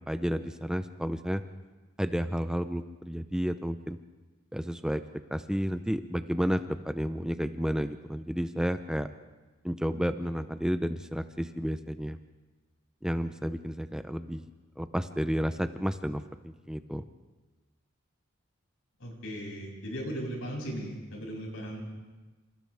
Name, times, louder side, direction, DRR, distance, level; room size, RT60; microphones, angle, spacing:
voice 1, 0.1-1.4 2.0-4.0 4.5-5.0 5.3-9.1 9.6-12.2 13.0-14.4 14.8-17.0, equal, 5° right, 8 dB, 0.6 m, -31 dB
voice 2, 19.0-21.8, equal, 85° left, -1 dB, 7.4 m, -37 dB
28.0 x 27.5 x 3.5 m, 1.2 s
head